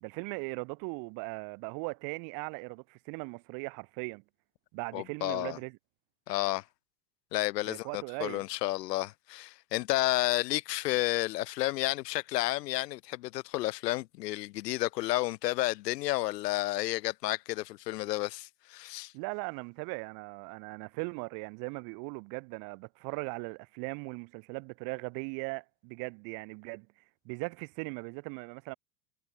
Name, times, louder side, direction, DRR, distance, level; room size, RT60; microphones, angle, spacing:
voice 1, 0.0-4.2 4.7-5.8 7.6-8.4 19.1-26.9 27.2-28.7, right 34 dB, 45° right, 1.3 m, -39 dB
voice 2, 4.9-5.6 6.3-6.6 7.3-19.1, left 17 dB, 75° left, 1.9 m, -31 dB
supercardioid pair, 150°, 49 cm